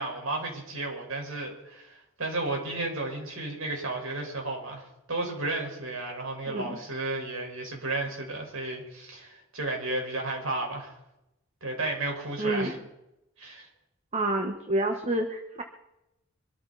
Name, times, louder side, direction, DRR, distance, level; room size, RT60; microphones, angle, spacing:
voice 1, 0.0-10.9 11.6-12.8 13.4-13.7, right 2 dB, 85° right, 1 dB, 5.1 m, -33 dB
voice 2, 6.5-6.8 12.4-12.8 14.1-15.6, right 1 dB, 30° right, 3 dB, 1.3 m, -28 dB
24.5 x 13.5 x 4.1 m, 0.89 s
head